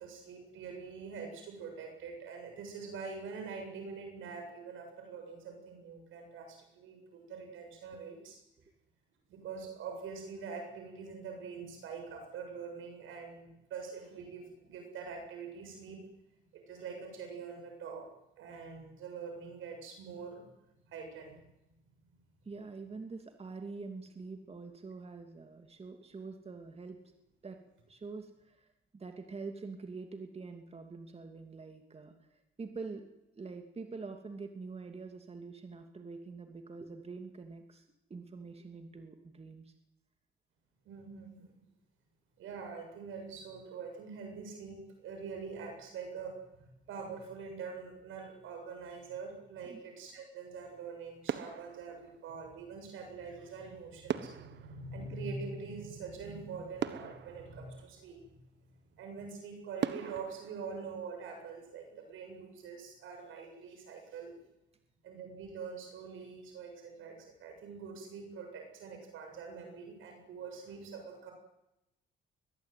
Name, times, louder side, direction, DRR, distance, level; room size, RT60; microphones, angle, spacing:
voice 1, 0.0-8.4 9.3-16.0 16.5-18.1 18.4-20.4 20.9-21.4 40.8-41.5 42.4-46.6 46.9-58.3 59.0-64.4 65.0-71.3, right 5 dB, 85° right, 4 dB, 7.6 m, -44 dB
voice 2, 22.4-27.0 27.4-27.6 27.9-33.0 33.3-37.8 38.1-39.7 49.7-49.8, right 4 dB, 30° right, 6 dB, 2.6 m, -45 dB
sound 1, 50.7-51.0 51.2-52.7 54.1-56.0 56.4-56.5 56.8-58.4 58.9-59.0 59.8-61.7 62.0-62.3, right 9 dB, 60° right, 1.4 m, -41 dB
22.5 x 20.0 x 9.3 m, 0.92 s
cardioid pair, 90°, 20 cm